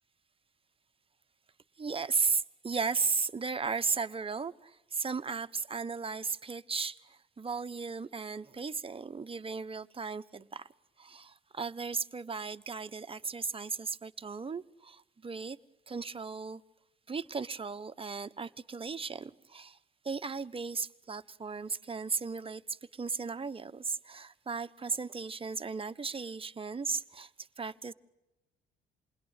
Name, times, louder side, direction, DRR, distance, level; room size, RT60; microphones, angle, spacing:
voice 1, 1.8-10.7 11.0-15.6 15.9-16.6 17.1-19.8 20.0-27.3 27.6-27.9, right 5 dB, 25° right, 9 dB, 1.2 m, -36 dB
29.0 x 21.0 x 9.1 m, 0.96 s
cardioid pair, 90°, 20 cm